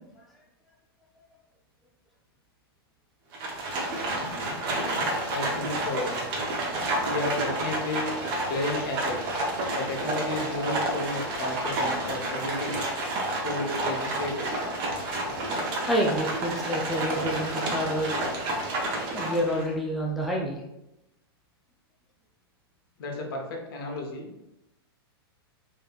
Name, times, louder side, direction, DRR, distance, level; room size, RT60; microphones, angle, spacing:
Livestock farm animals working animals, 3.3-19.7, right 1 dB, 35° right, 0.8 m, -30 dB
voice 1, 4.2-6.2 6.9-8.1 8.5-9.3 9.7-12.8 13.4-14.5 23.0-24.3, left 2 dB, 60° left, 1 dB, 0.9 m, -33 dB
voice 2, 15.9-18.2 19.1-20.6, equal, ahead, -3 dB, 0.3 m, -28 dB
3.4 x 3.1 x 2.3 m, 0.89 s
hypercardioid pair, 140°, 13 cm